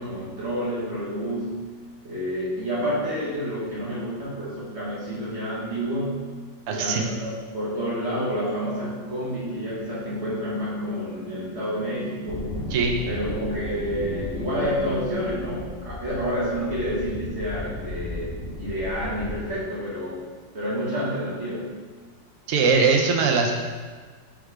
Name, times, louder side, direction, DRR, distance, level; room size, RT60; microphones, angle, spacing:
voice 1, 0.0-1.7 2.0-6.2 6.7-12.7 13.1-20.2 20.5-21.7, equal, 45° right, -8 dB, 1.2 m, -29 dB
voice 2, 6.7-7.0 12.7-12.9 22.5-23.5, right 5 dB, 85° right, 1 dB, 0.6 m, -21 dB
sound 1, 8.3-15.5, left 1 dB, 20° right, 1.0 m, -37 dB
sound 2, 12.3-19.5, left 1 dB, 75° left, 0.5 m, -36 dB
4.5 x 3.6 x 3.2 m, 1.5 s
omnidirectional pair, 1.9 m